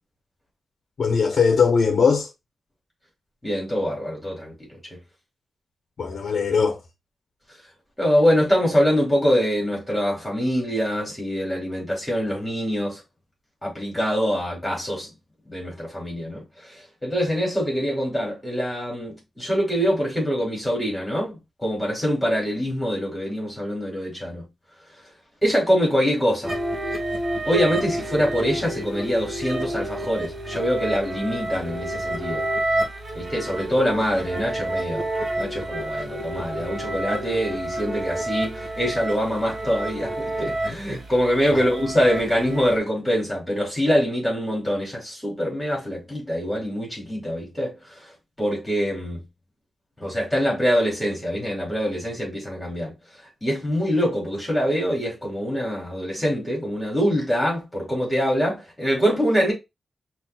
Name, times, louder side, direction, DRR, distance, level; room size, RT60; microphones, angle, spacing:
voice 1, 1.0-2.3 6.0-6.8 41.5-41.7, left 5 dB, 60° left, 0.7 m, -20 dB
voice 2, 3.4-4.8 8.0-13.0 13.6-15.1 15.5-16.4 16.7-24.4 25.4-26.6 27.5-32.5 33.1-35.1 35.4-47.8 48.4-49.2 50.0-52.9 53.4-59.5, equal, 10° left, 2.3 m, -24 dB
sound 1, 26.4-42.8, right 1 dB, 40° right, 1.3 m, -29 dB
5.5 x 2.5 x 2.3 m
wide cardioid pair, 145°, 0 cm